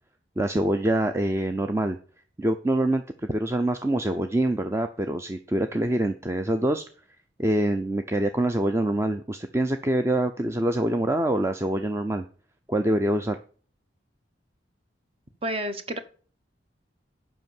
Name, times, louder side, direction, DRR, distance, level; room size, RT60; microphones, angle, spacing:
voice 1, 0.4-2.0 2.4-3.0 3.3-6.8 7.4-12.2 12.7-13.4, right 1 dB, 15° right, 7 dB, 0.5 m, -25 dB
voice 2, 15.4-16.0, right 1 dB, 30° right, 9 dB, 1.0 m, -30 dB
8.1 x 5.8 x 7.1 m, 0.42 s
head